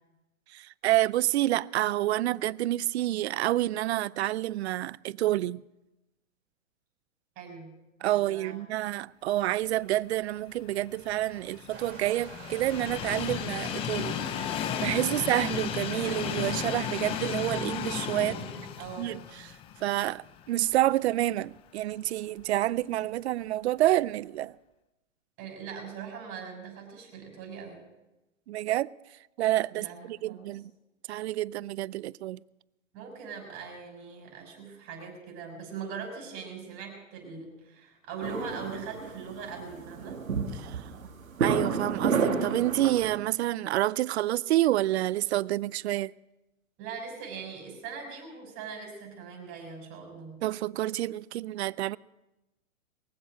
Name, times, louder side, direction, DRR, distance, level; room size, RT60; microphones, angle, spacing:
voice 1, 0.5-5.6 8.0-14.2 14.8-18.4 19.0-19.5 19.8-24.6 28.5-28.9 29.4-30.7 31.1-32.4 40.5-40.9 41.4-46.1 50.4-52.0, right 15 dB, 55° right, 0.4 m, -28 dB
voice 2, 7.4-7.7 8.1-8.6 15.1-15.3 18.1-19.1 25.4-27.8 29.7-30.6 32.9-40.3 46.8-50.4, right 5 dB, 35° right, 6.1 m, -41 dB
Train, 10.6-20.8 21.2-21.3 22.4-22.5, left 9 dB, 15° left, 0.5 m, -34 dB
sound 1, 11.7-17.6, right 5 dB, 75° right, 3.5 m, -46 dB
sound 2, 38.2-43.2, right 5 dB, 90° right, 1.9 m, -30 dB
23.0 x 7.9 x 6.2 m
hypercardioid pair, 130°, 40 cm